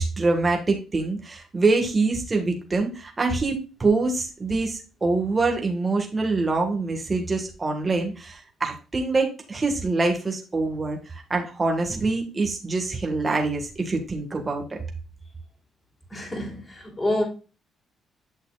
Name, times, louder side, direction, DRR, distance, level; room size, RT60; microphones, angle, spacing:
voice 1, 0.0-14.8, right 3 dB, 25° right, 1.7 m, -25 dB
voice 2, 16.1-17.2, left 1 dB, 20° left, 3.3 m, -27 dB
8.7 x 6.4 x 2.4 m
cardioid pair, 90°, 0 cm